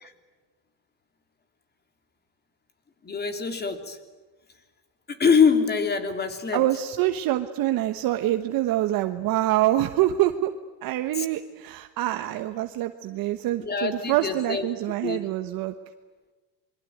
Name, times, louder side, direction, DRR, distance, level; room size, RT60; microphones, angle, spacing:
voice 1, 3.0-4.0 5.1-6.6 11.1-11.2 13.6-14.7 15.0-15.3, left 6 dB, 25° left, 7 dB, 3.2 m, -24 dB
voice 2, 6.5-10.5 10.8-15.7, right 14 dB, 55° right, 8 dB, 1.3 m, -25 dB
27.5 x 22.5 x 9.3 m, 1.3 s
cardioid pair, 140°, 43 cm